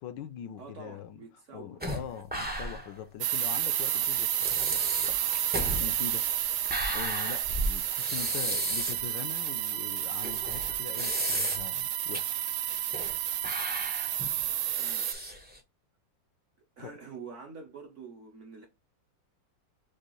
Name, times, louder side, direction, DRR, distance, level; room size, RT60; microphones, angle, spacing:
voice 1, 0.0-1.2 1.5-5.4 5.8-6.3 6.9-12.4 16.8-17.0, left 9 dB, 75° left, 1.2 m, -42 dB
voice 2, 0.6-1.8 14.8-15.1 16.8-18.7, right 5 dB, 55° right, 0.9 m, -46 dB
sound 1, 1.8-3.0 3.3-3.4 4.0-4.1 4.4-9.0 9.5-9.6 10.2-11.8 12.1-12.2 12.7-13.2 13.4-15.6, equal, 15° right, 0.3 m, -34 dB
sound 2, 3.2-15.1, right 11 dB, 75° right, 1.0 m, -31 dB
6.2 x 2.4 x 3.0 m
omnidirectional pair, 2.0 m